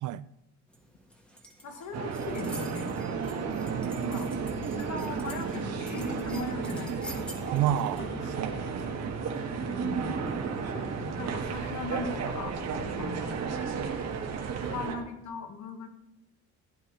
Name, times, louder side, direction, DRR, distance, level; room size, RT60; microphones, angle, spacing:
sound 1, 0.7-8.0, equal, 5° left, 1.5 m, -48 dB
voice 1, 1.6-2.9 4.0-4.3 4.7-7.3 9.7-10.2 11.2-12.6 13.0-13.5 14.6-15.9, left 3 dB, 70° left, 1.6 m, -38 dB
sound 2, 1.9-14.9, right 5 dB, 60° right, 1.6 m, -33 dB
voice 2, 3.7-4.4 7.5-9.2, right 12 dB, 85° right, 0.5 m, -32 dB
sound 3, 5.3-11.5, left 3 dB, 40° left, 1.3 m, -49 dB
15.5 x 9.4 x 3.2 m
cardioid pair, 155°, 30 cm